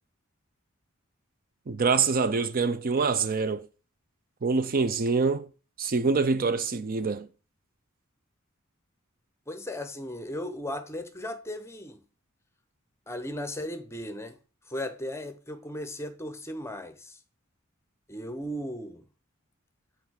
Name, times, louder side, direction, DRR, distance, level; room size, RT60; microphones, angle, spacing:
voice 1, 1.7-3.7 4.4-5.5 5.8-7.3, right 4 dB, 45° right, 0.5 m, -25 dB
voice 2, 9.5-12.0 13.1-14.4 14.7-17.2 18.1-19.1, left 1 dB, 15° left, 0.9 m, -36 dB
8.2 x 4.7 x 6.4 m
head